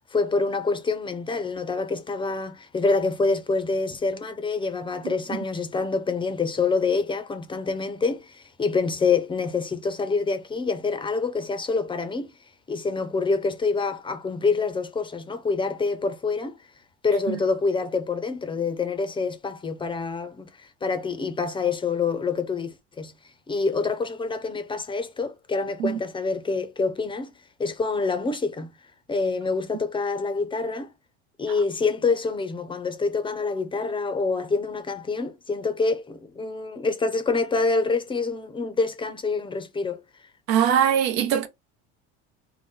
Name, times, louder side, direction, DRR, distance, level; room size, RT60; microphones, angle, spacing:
voice 1, 0.1-12.3 12.7-16.6 17.0-23.1 23.5-27.3 27.6-28.7 29.1-30.9 31.4-40.0, left 4 dB, 15° left, 0.6 m, -26 dB
voice 2, 40.5-41.5, right 9 dB, 75° right, 0.9 m, -21 dB
3.8 x 2.2 x 3.8 m
cardioid pair, 140°, 31 cm